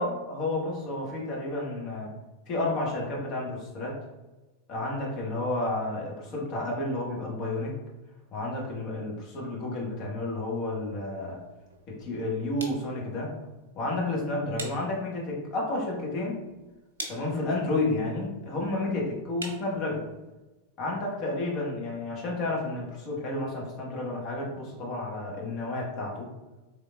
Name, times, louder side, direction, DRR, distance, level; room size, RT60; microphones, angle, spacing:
voice 1, 0.0-2.1 2.5-4.0 4.7-7.7 8.3-11.4 11.9-13.3 13.7-16.4 17.1-20.0 20.8-26.3, left 2 dB, 40° left, -2 dB, 1.1 m, -31 dB
sound 1, 10.6-20.3, right 2 dB, 70° right, 0.6 m, -47 dB
3.7 x 3.4 x 2.2 m, 1.1 s
figure-of-eight pair, 90°, 0 cm